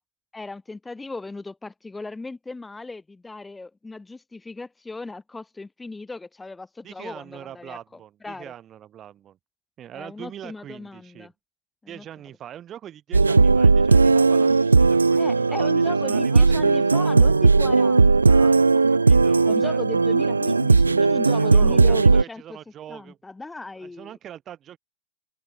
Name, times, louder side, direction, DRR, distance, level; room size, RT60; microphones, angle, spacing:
voice 1, 0.3-7.8 8.2-8.5 9.9-11.3 11.8-12.0 15.2-18.6 19.4-22.6 22.9-24.2, left 3 dB, 10° left, 1.7 m, -37 dB
voice 2, 6.8-9.4 9.8-11.3 11.9-17.3 18.9-19.8 21.3-23.2 23.8-24.8, right 10 dB, 30° right, 4.7 m, -42 dB
sound 1, 13.1-22.2, right 4 dB, 80° right, 0.4 m, -17 dB
figure-of-eight pair, 90°, 0 cm